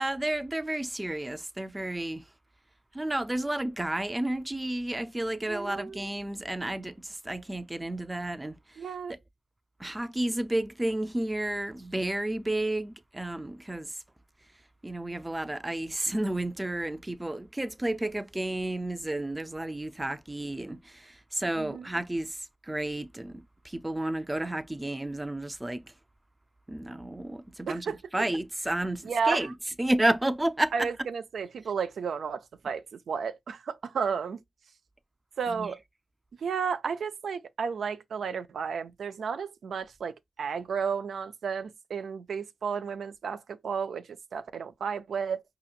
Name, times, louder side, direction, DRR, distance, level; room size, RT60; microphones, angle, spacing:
voice 1, 0.0-2.2 2.9-6.9 7.2-8.6 9.1-9.2 9.8-13.9 14.8-22.4 22.7-25.8 26.7-30.9 35.5-35.7, right 1 dB, 20° right, 0.5 m, -31 dB
voice 2, 5.5-6.1 8.8-9.2 21.6-21.9 27.7-28.3 29.0-29.5 30.7-34.4 35.4-35.8 36.4-45.4, right 6 dB, 80° right, 0.4 m, -33 dB
4.8 x 2.9 x 2.4 m
cardioid pair, 55°, 0 cm